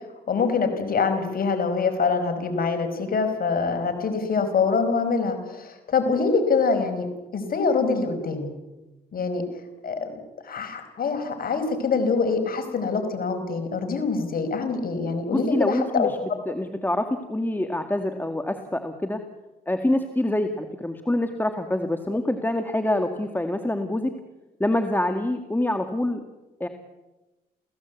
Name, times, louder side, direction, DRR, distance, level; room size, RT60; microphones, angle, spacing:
voice 1, 0.3-7.1 7.3-8.5 9.1-9.4 9.8-10.1 10.4-16.1, left 4 dB, 60° left, 7 dB, 4.9 m, -24 dB
voice 2, 15.3-16.2 16.5-19.2 19.7-24.1 24.6-26.2 26.6-26.7, left 1 dB, 10° left, 6 dB, 1.9 m, -26 dB
28.5 x 16.0 x 8.2 m, 1.1 s
cardioid pair, 80°, 17 cm